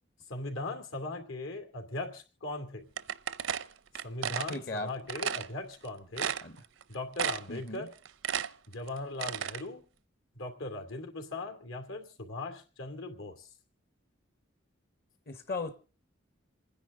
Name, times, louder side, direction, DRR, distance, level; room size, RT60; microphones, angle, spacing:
voice 1, 0.3-2.9 4.0-6.4 6.9-7.9 8.7-9.8 10.3-13.5, left 2 dB, 85° left, 2.7 m, -39 dB
sound 1, 3.0-4.6 5.1-5.5 5.8-5.9 6.2-6.8 7.2-7.6 7.9-9.6, right 8 dB, 70° right, 0.6 m, -33 dB
voice 2, 4.5-4.9 6.4-6.5 7.5-7.9 15.3-15.9, left 2 dB, 50° left, 1.0 m, -37 dB
27.5 x 10.0 x 3.7 m
head